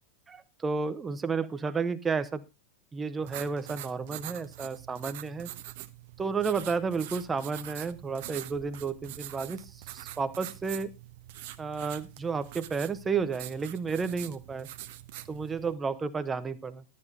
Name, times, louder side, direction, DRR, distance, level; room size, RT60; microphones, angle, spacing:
voice 1, 0.3-2.4 2.9-5.5 6.2-10.9 11.6-14.7 15.3-16.8, right 5 dB, 15° right, 12 dB, 1.0 m, -32 dB
sound 1, 3.2-15.7, right 14 dB, 50° right, 0.9 m, -44 dB
12.0 x 9.6 x 3.9 m, 0.25 s
figure-of-eight pair, 90°, 0 cm